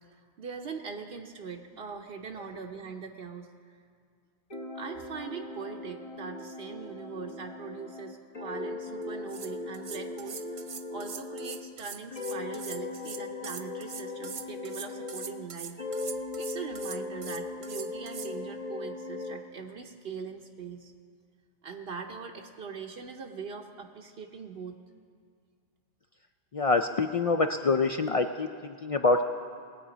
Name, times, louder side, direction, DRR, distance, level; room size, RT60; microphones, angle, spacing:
voice 1, 0.4-3.5 4.7-15.8 16.4-20.9 21.6-24.8, right 5 dB, 75° right, 2 dB, 1.0 m, -41 dB
sound 1, 4.5-11.7 12.1-15.5 15.8-19.4, left 2 dB, 35° left, 1.0 m, -39 dB
sound 2, 9.0-9.1 9.3-18.3, right 7 dB, 50° right, 0.4 m, -42 dB
voice 2, 26.5-29.2, left 3 dB, 55° left, 6 dB, 0.4 m, -26 dB
20.5 x 8.2 x 5.0 m, 2.1 s
omnidirectional pair, 1.0 m